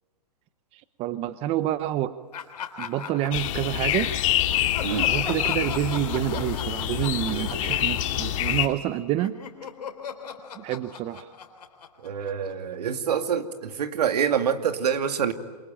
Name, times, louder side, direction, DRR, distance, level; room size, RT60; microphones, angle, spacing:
voice 1, 0.7-2.1 2.8-4.1 4.9-9.4 10.6-11.3, right 13 dB, 30° right, 14 dB, 0.9 m, -28 dB
Laughter, 2.3-4.1 4.5-8.9 9.2-12.8, left 7 dB, 75° left, 3.4 m, -39 dB
sound 1, 3.3-8.7, left 13 dB, 50° left, 2.6 m, -26 dB
voice 2, 7.3-7.8 12.0-15.3, right 8 dB, 70° right, 8 dB, 2.4 m, -26 dB
28.0 x 23.5 x 9.0 m, 1.4 s
hypercardioid pair, 130°, 21 cm